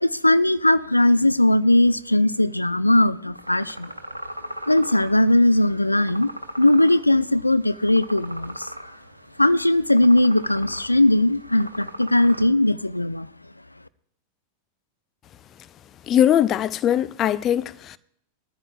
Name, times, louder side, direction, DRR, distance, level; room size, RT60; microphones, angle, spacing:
voice 1, 0.0-3.9 4.7-6.3 6.6-8.7 9.4-13.3, left 1 dB, 85° left, 0.4 m, -19 dB
sound 1, 3.3-12.5, equal, 85° right, 1.2 m, -39 dB
voice 2, 16.1-18.0, left 10 dB, 30° left, 0.5 m, -20 dB
20.5 x 14.0 x 2.4 m
figure-of-eight pair, 90°, 0 cm